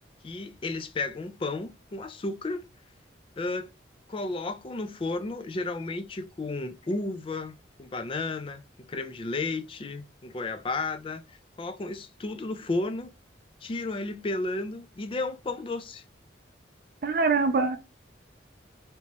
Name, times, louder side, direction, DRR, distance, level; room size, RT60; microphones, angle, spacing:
voice 1, 0.2-2.7 3.4-3.7 4.1-8.6 8.9-13.1 13.6-16.0, left 3 dB, 30° left, 0.3 m, -33 dB
voice 2, 17.0-17.8, right 4 dB, 50° right, 0.4 m, -23 dB
3.3 x 2.9 x 2.8 m
head